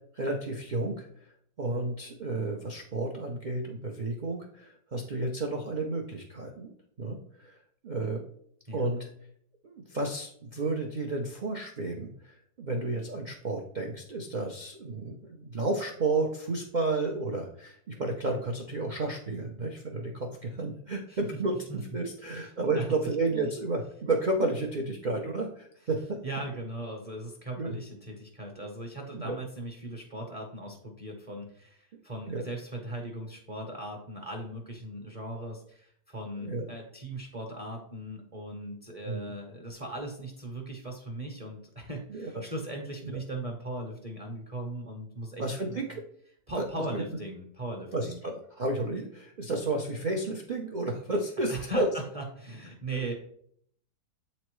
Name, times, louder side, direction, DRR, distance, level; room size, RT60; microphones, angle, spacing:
voice 1, 0.1-1.1 1.6-6.7 7.0-7.5 7.8-8.2 8.7-9.1 9.6-26.2 27.6-27.8 29.1-29.4 32.3-32.5 36.4-36.6 39.0-39.3 42.1-42.4 45.4-46.0 46.6-46.7 46.9-47.0 47.9-51.9, right 2 dB, 80° right, 0 dB, 0.4 m, -32 dB
voice 2, 22.3-22.9 23.4-23.5 26.2-46.0 46.5-48.2 51.5-53.1, right 1 dB, 30° right, 1 dB, 0.7 m, -38 dB
7.9 x 4.2 x 3.1 m, 0.65 s
omnidirectional pair, 1.8 m